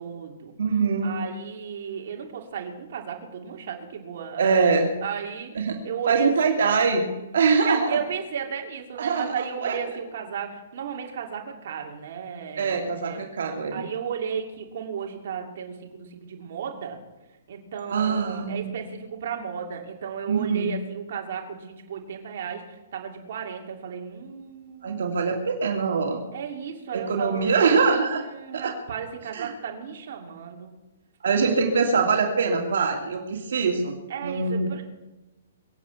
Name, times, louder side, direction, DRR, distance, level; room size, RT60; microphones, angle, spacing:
voice 1, 0.0-0.5 1.0-4.7 5.0-6.3 7.6-13.2 13.7-17.0 17.5-22.6 22.9-25.1 26.3-27.8 28.3-30.7 34.1-34.8, right 7 dB, 55° right, 1 dB, 2.6 m, -34 dB
voice 2, 0.6-1.2 4.4-4.9 5.5-5.8 6.1-7.1 7.3-8.0 9.0-9.8 12.6-13.9 17.9-18.8 20.3-20.7 24.8-26.2 26.9-28.2 28.5-28.7 29.3-29.5 31.2-33.9 34.2-34.7, right 5 dB, 70° right, 2 dB, 2.4 m, -23 dB
23.0 x 8.3 x 7.0 m, 1.1 s
hypercardioid pair, 165°, 0 cm